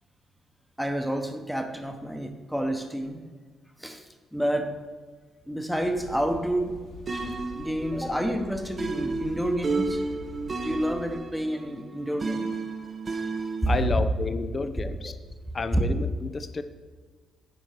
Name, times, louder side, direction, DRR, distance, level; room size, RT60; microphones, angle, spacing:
voice 1, 0.8-3.3 3.8-4.8 5.5-6.8 7.1-10.0 10.5-12.5 15.7-15.8, right 1 dB, ahead, 5 dB, 1.1 m, -29 dB
sound 1, 5.8-11.2, left 2 dB, 75° left, 1.7 m, -45 dB
sound 2, 7.1-13.9, right 3 dB, 35° right, 1.0 m, -33 dB
voice 2, 13.7-15.2 15.5-16.6, left 4 dB, 35° left, 10 dB, 0.7 m, -30 dB
10.0 x 4.4 x 6.6 m, 1.5 s
cardioid pair, 90°, 0 cm